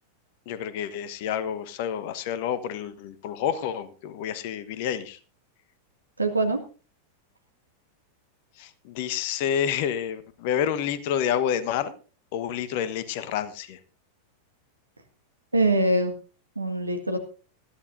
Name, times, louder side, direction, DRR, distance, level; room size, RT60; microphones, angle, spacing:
voice 1, 0.5-5.2 8.6-11.9 12.3-13.8, left 9 dB, 50° left, 14 dB, 1.2 m, -29 dB
voice 2, 6.2-6.6 15.5-16.1 16.6-17.2, right 2 dB, 80° right, 6 dB, 1.8 m, -23 dB
20.0 x 13.5 x 2.6 m, 0.35 s
figure-of-eight pair, 90°, 0 cm